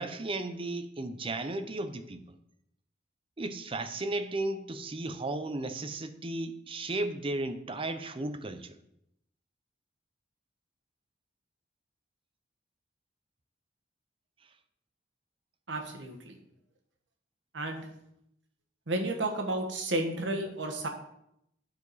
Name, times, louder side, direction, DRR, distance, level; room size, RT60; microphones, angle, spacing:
voice 1, 0.0-2.2 3.4-8.7, right 2 dB, 30° right, 0.6 m, -34 dB
voice 2, 15.7-16.4 17.5-17.9 18.9-20.9, right 2 dB, 75° right, 1.3 m, -32 dB
9.5 x 4.8 x 4.1 m
head